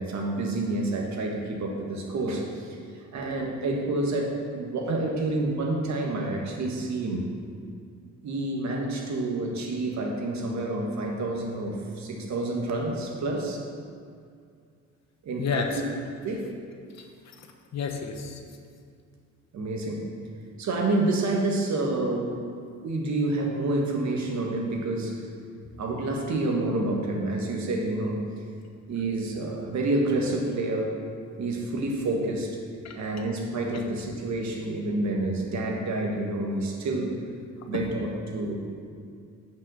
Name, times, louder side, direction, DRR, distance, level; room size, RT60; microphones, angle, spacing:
voice 1, 0.0-7.3 8.2-13.6 15.2-15.7 16.2-16.4 19.5-20.1 20.6-22.5 22.8-25.2 25.8-28.2 28.9-30.9 31.4-32.6 32.9-37.2 37.6-38.7, right 2 dB, 65° right, 1 dB, 1.5 m, -28 dB
voice 2, 15.4-15.8 16.9-17.5 17.7-18.4 32.8-33.0 37.7-37.9, left 6 dB, 60° left, 3 dB, 1.2 m, -31 dB
8.8 x 5.6 x 6.3 m, 2.3 s
cardioid pair, 90°, 30 cm